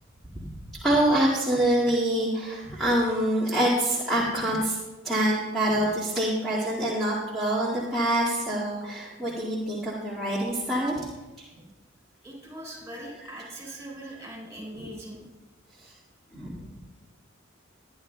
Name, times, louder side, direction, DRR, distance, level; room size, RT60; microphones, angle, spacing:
voice 1, 0.8-4.8 5.0-10.9 12.9-13.0 14.7-14.9 15.8-15.9 16.3-16.7, right 1 dB, ahead, -8 dB, 2.1 m, -26 dB
voice 2, 12.2-15.2, right 1 dB, 15° right, -1 dB, 4.0 m, -41 dB
23.5 x 10.0 x 2.3 m, 1.1 s
head